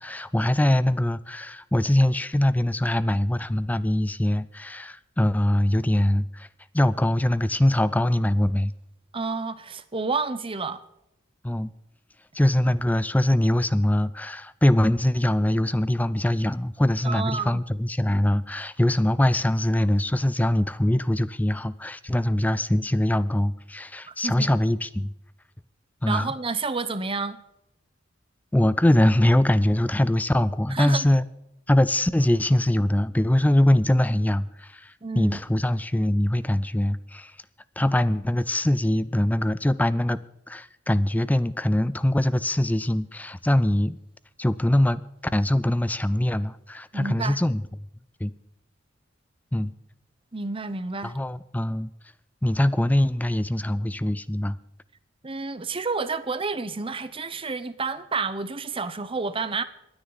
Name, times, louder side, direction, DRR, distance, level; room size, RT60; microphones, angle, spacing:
voice 1, 0.0-6.5 6.7-8.7 11.4-11.7 12.3-25.1 26.0-26.3 28.5-31.2 31.7-37.3 37.8-40.2 40.5-44.0 44.4-45.0 45.3-47.6 48.2-48.3 49.5-49.7 51.0-51.9 52.4-54.6, left 1 dB, 10° left, 0.4 m, -23 dB
voice 2, 9.1-10.8 17.0-17.6 24.1-24.5 26.1-27.4 30.7-31.1 35.0-35.4 46.9-47.4 50.3-51.1 55.2-59.6, right 4 dB, 30° right, 0.8 m, -30 dB
26.5 x 9.7 x 4.0 m
head